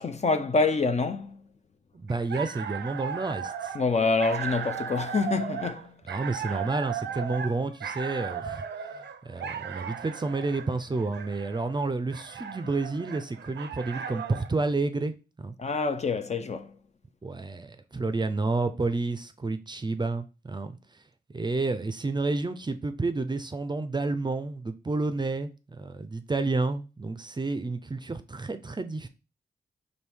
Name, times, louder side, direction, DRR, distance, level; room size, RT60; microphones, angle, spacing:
voice 1, 0.0-1.4 3.7-5.9 15.6-16.7, left 4 dB, 40° left, 0.5 m, -26 dB
voice 2, 1.9-3.8 6.1-8.7 9.2-15.1 15.4-15.5 17.2-20.8 21.3-25.5 25.8-29.1, right 3 dB, 25° right, 0.5 m, -30 dB
sound 1, 2.1-14.5, right 7 dB, 75° right, 0.5 m, -36 dB
4.5 x 2.7 x 3.4 m
cardioid pair, 50°, 18 cm